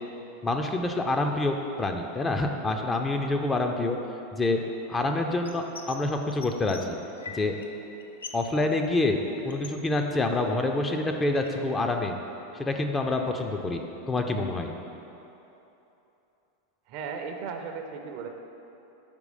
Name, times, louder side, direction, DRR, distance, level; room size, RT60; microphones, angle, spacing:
voice 1, 0.4-4.0 4.3-4.6 4.9-7.0 7.3-7.6 8.3-9.2 9.4-12.2 12.5-13.8 14.1-14.7, left 2 dB, 15° left, 4 dB, 0.5 m, -27 dB
sound 1, 5.4-6.0 6.3-7.7 7.9-8.5 8.8-10.6 11.0-11.8, left 4 dB, 85° left, 0.5 m, -44 dB
voice 2, 16.9-18.3, right 5 dB, 50° right, 5 dB, 0.6 m, -36 dB
5.3 x 4.6 x 5.0 m, 3.0 s
hypercardioid pair, 95°, 0 cm